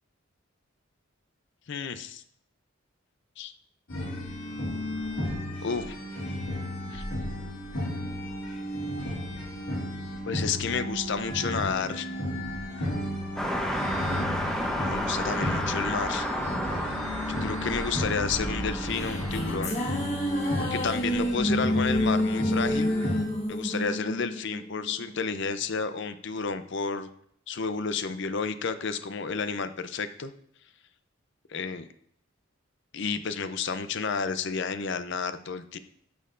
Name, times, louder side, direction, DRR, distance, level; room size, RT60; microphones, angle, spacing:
voice 1, 1.7-2.2 3.4-3.5 5.6-6.0 6.9-7.0 10.2-12.1 14.8-16.3 17.4-19.8 20.6-22.9 23.5-27.1 27.5-30.3 31.5-31.9 32.9-35.8, left 5 dB, 55° left, 11 dB, 0.5 m, -31 dB
sound 1, 3.9-23.2, equal, 75° left, 2.3 m, -34 dB
sound 2, 13.4-19.6, equal, 5° left, 0.8 m, -31 dB
sound 3, 18.7-25.2, left 1 dB, 30° left, 1.4 m, -29 dB
12.0 x 6.6 x 2.6 m, 0.67 s
head